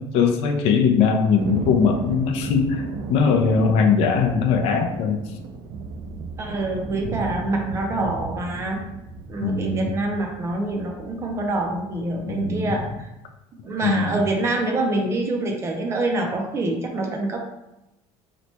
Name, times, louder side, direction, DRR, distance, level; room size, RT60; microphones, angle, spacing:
voice 1, 0.0-5.2 9.4-9.9 12.3-12.7 13.8-14.2, left 5 dB, 60° left, 4 dB, 0.4 m, -20 dB
Thunder, 1.4-12.9, right 4 dB, 85° right, 0.5 m, -35 dB
voice 2, 6.4-8.8 9.3-13.1 13.6-17.4, right 2 dB, 25° right, 2 dB, 0.4 m, -26 dB
2.9 x 2.2 x 4.1 m, 0.91 s
cardioid pair, 175°, 12 cm